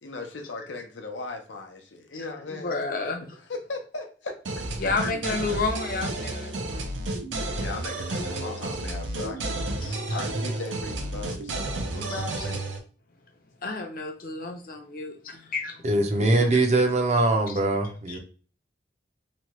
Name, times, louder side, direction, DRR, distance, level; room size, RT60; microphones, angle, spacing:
voice 1, 0.0-2.7 3.5-4.6 5.0-5.1 7.6-9.6 10.1-11.6 11.9-12.6 16.2-16.6, left 3 dB, 85° left, 0.7 m, -37 dB
voice 2, 2.1-3.2 4.8-6.9 9.8-10.3 12.1-12.2 13.6-15.9 18.1-18.2, left 3 dB, 50° left, 0.6 m, -31 dB
sound 1, 4.4-12.8, right 2 dB, 90° right, 0.6 m, -31 dB
voice 3, 15.8-18.2, right 2 dB, 35° right, 0.5 m, -22 dB
3.0 x 2.3 x 2.9 m
head